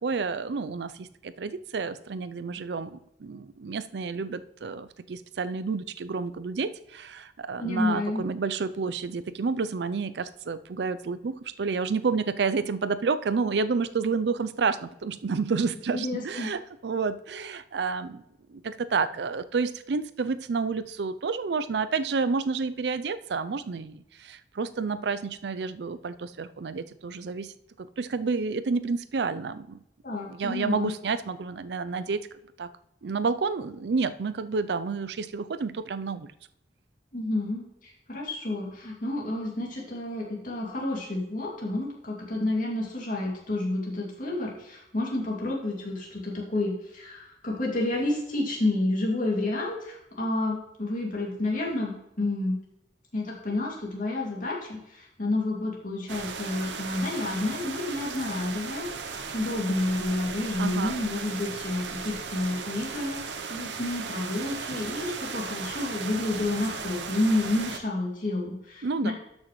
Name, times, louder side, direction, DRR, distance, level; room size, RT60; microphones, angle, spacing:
voice 1, 0.0-18.2 18.5-27.5 27.8-29.8 30.3-32.2 32.6-32.7 33.0-36.3 60.6-61.0 68.8-69.1, right 4 dB, 70° right, 14 dB, 0.5 m, -30 dB
voice 2, 7.6-8.2 15.9-16.5 30.0-30.9 37.1-52.6 53.1-69.1, left 2 dB, 50° left, -3 dB, 2.4 m, -30 dB
sound 1, 56.1-67.8, right 5 dB, 85° right, 0.8 m, -36 dB
12.5 x 6.3 x 3.1 m, 0.84 s
head